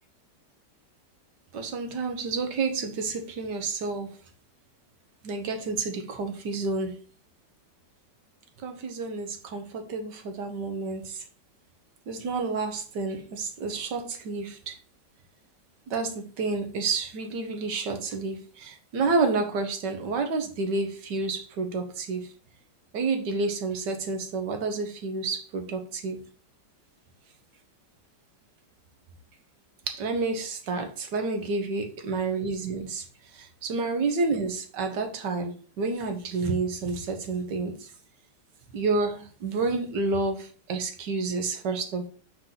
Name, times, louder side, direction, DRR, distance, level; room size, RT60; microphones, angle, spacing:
voice 1, 1.5-4.1 5.2-7.0 8.6-11.2 12.1-14.8 15.9-22.2 22.9-26.2 29.9-33.0 33.3-37.9 38.7-42.1, right 3 dB, 70° right, 1.7 m, -29 dB
7.1 x 4.4 x 3.9 m
omnidirectional pair, 2.0 m